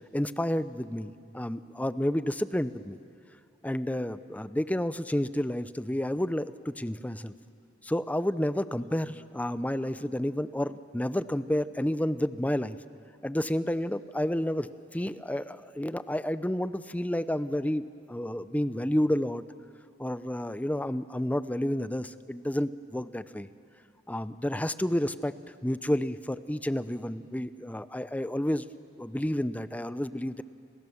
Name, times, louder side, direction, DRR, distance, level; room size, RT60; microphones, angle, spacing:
voice 1, 0.1-3.0 3.6-7.3 7.8-12.8 13.2-19.4 20.0-23.5 24.1-25.3 25.6-28.7 29.0-30.4, left 1 dB, 10° left, 13 dB, 0.6 m, -30 dB
29.5 x 26.5 x 7.2 m, 2.4 s
head